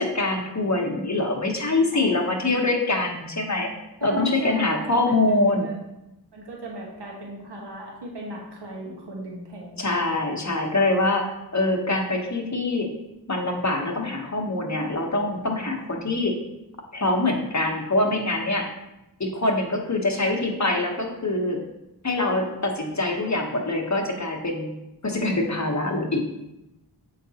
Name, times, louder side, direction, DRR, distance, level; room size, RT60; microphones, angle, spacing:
voice 1, 0.0-3.7 4.0-5.7 9.8-12.9 13.3-16.3 16.9-18.7 19.2-21.6 22.0-24.7 25.0-26.2, left 2 dB, 40° left, 2 dB, 1.0 m, -24 dB
voice 2, 1.9-2.9 4.0-5.8 6.3-10.1, right 2 dB, 70° right, -2 dB, 1.2 m, -38 dB
7.1 x 4.7 x 2.8 m, 0.93 s
wide cardioid pair, 65°, 42 cm